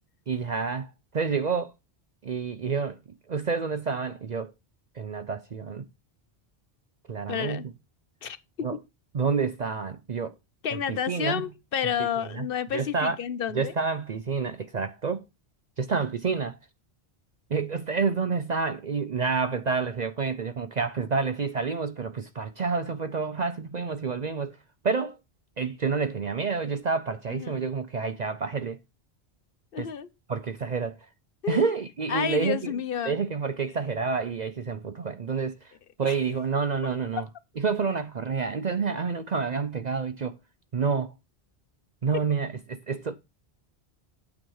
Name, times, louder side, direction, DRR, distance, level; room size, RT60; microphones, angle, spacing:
voice 1, 0.3-1.7 2.2-3.0 3.3-4.5 5.0-5.8 7.1-7.7 8.6-8.8 9.1-10.3 10.9-11.4 12.3-12.5 12.7-13.2 13.5-15.2 15.8-16.5 17.5-24.6 24.8-25.2 25.6-28.8 29.8-29.9 30.3-31.0 31.5-32.7 33.0-35.7 36.0-37.2 37.6-40.4 40.7-41.1 42.0-43.2, right 5 dB, 45° right, 0.7 m, -28 dB
voice 2, 7.3-7.6 8.2-8.8 10.6-13.7 27.3-27.7 29.7-30.1 31.4-31.7 32.1-33.2 36.0-36.2, left 8 dB, 60° left, 1.0 m, -30 dB
9.0 x 6.2 x 4.8 m
omnidirectional pair, 1.1 m